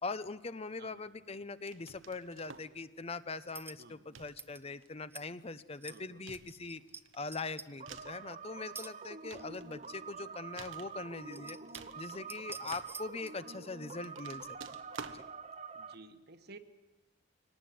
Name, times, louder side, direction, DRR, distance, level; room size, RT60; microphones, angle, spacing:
voice 1, 0.0-6.8 7.1-11.6 11.9-14.6 15.1-15.2, left 3 dB, 30° left, 14 dB, 0.8 m, -42 dB
voice 2, 0.8-1.1 3.8-4.2 5.9-6.2 9.3-9.5 12.6-12.7 15.7-16.6, right 2 dB, 55° right, 9 dB, 1.6 m, -55 dB
sound 1, 1.7-2.8 3.5-3.8 4.2-4.9 5.2-5.7 6.3-8.2 8.9-10.1 10.6-11.4 11.7-13.3 14.0-15.3, right 5 dB, 90° right, 1.5 m, -51 dB
sound 2, 3.5-3.8 4.4-4.6 5.1-5.3 5.7-6.0 6.3-7.0 7.3-7.7 8.7-8.9 9.3-9.4 10.7-10.8 11.2-12.0 12.3-13.4, right 4 dB, 10° right, 0.7 m, -48 dB
sound 3, 7.8-15.9, right 5 dB, 35° right, 1.2 m, -47 dB
24.0 x 19.0 x 9.5 m, 1.1 s
head